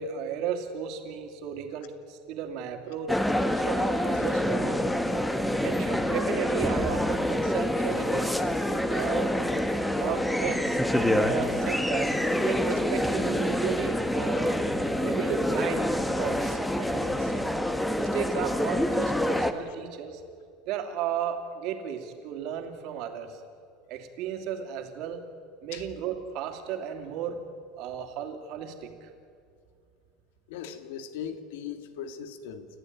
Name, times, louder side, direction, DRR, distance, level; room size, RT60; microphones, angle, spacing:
voice 1, 0.0-3.2 3.5-4.8 5.6-8.4 8.9-9.4 10.0-14.6 15.0-17.5 17.9-20.2 20.7-23.4 23.9-25.2 25.6-27.4 27.8-29.1, right 8 dB, 50° right, 4 dB, 2.8 m, -34 dB
sound 1, 3.1-19.5, left 1 dB, 5° left, 1.1 m, -27 dB
voice 2, 30.5-32.7, left 8 dB, 90° left, 9 dB, 2.1 m, -38 dB
29.0 x 15.0 x 9.7 m, 2.4 s
cardioid pair, 170°, 0 cm